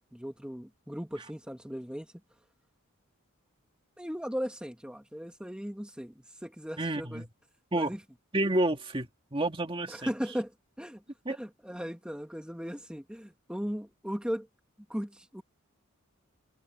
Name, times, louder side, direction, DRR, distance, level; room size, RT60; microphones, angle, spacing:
voice 1, 0.1-2.1 4.0-7.2 7.7-8.0 9.9-11.0 11.3-14.5 14.9-15.4, equal, 5° right, 1.9 m, -37 dB
voice 2, 6.8-7.3 7.7-8.0 8.3-10.1 11.3-11.4, right 1 dB, 25° right, 2.1 m, -30 dB
head